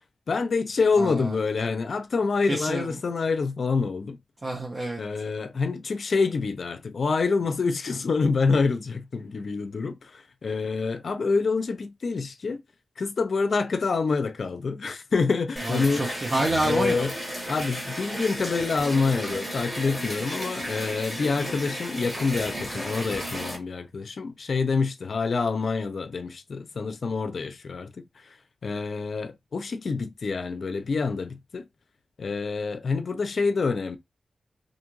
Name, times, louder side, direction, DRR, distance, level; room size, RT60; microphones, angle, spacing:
voice 1, 0.3-4.2 5.0-12.6 13.0-16.0 16.6-17.1 17.5-28.0 28.6-31.7 32.2-34.0, left 4 dB, 60° left, 0.5 m, -27 dB
voice 2, 1.0-1.4 2.4-2.9 4.4-5.0 15.6-17.1, right 1 dB, 35° right, 0.7 m, -28 dB
sound 1, 15.6-23.6, equal, 10° right, 1.4 m, -34 dB
2.6 x 2.4 x 3.0 m
wide cardioid pair, 100°, 0 cm